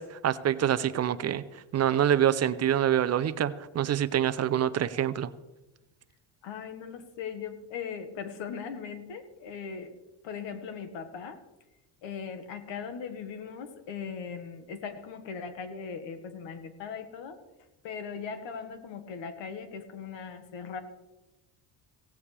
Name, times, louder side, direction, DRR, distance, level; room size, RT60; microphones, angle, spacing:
voice 1, 0.0-5.3, right 10 dB, 35° right, 14 dB, 0.5 m, -26 dB
voice 2, 6.4-9.9 10.2-11.4 12.0-17.4 17.8-20.8, left 6 dB, 85° left, 8 dB, 1.7 m, -39 dB
17.0 x 15.5 x 3.4 m, 1.1 s
cardioid pair, 155°, 43 cm